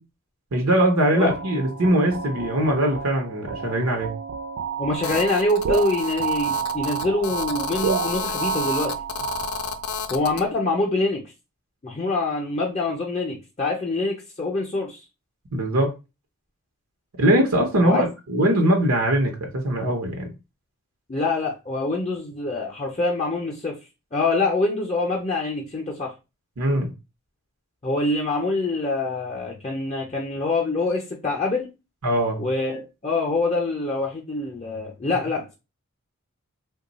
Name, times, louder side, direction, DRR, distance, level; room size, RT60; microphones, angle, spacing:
voice 1, 0.5-4.1 15.5-15.9 17.2-20.3 26.6-26.9 32.0-32.4, right 1 dB, 85° right, 0.8 m, -21 dB
sound 1, 1.3-10.0, right 7 dB, 60° right, 0.3 m, -30 dB
voice 2, 4.8-8.9 10.1-11.3 11.8-15.0 17.8-18.0 21.1-23.8 24.1-26.1 27.8-31.7 32.4-35.6, left 2 dB, 30° left, 0.5 m, -25 dB
Telephone, 5.0-10.4, left 6 dB, 90° left, 0.4 m, -32 dB
3.0 x 2.2 x 4.0 m
head